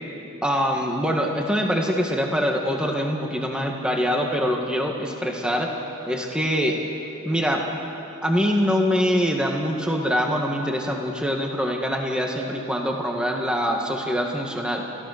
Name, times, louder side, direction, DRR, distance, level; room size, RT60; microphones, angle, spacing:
voice 1, 0.4-5.7 6.1-6.8 7.2-7.6 8.2-14.8, equal, 5° right, 1 dB, 1.7 m, -24 dB
29.0 x 14.5 x 6.6 m, 2.8 s
head